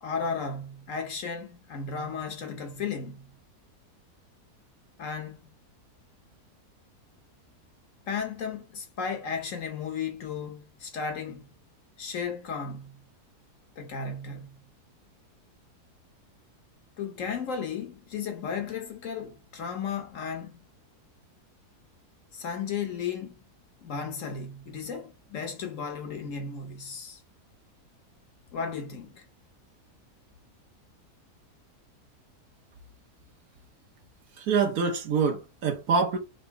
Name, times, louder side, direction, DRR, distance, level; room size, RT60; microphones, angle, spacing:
voice 1, 0.0-3.3 5.0-5.4 8.1-11.5 12.0-13.0 13.8-14.6 17.0-20.6 22.3-23.4 23.8-27.2 28.5-29.2, left 6 dB, 60° left, 1.1 m, -34 dB
voice 2, 34.4-36.2, right 5 dB, 70° right, 1.4 m, -25 dB
3.9 x 2.6 x 4.5 m
omnidirectional pair, 1.7 m